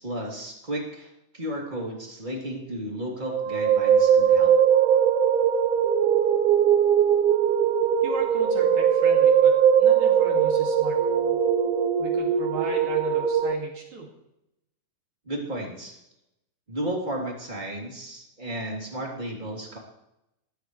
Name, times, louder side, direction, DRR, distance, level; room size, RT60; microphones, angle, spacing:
voice 1, 0.0-4.5 15.2-16.0 16.7-19.8, right 1 dB, 15° right, -2 dB, 2.8 m, -33 dB
sound 1, 3.3-13.5, right 8 dB, 75° right, 2.1 m, -20 dB
voice 2, 8.0-11.4 12.0-14.1, right 3 dB, 55° right, -1 dB, 3.6 m, -37 dB
20.0 x 15.5 x 3.3 m, 0.86 s
omnidirectional pair, 4.2 m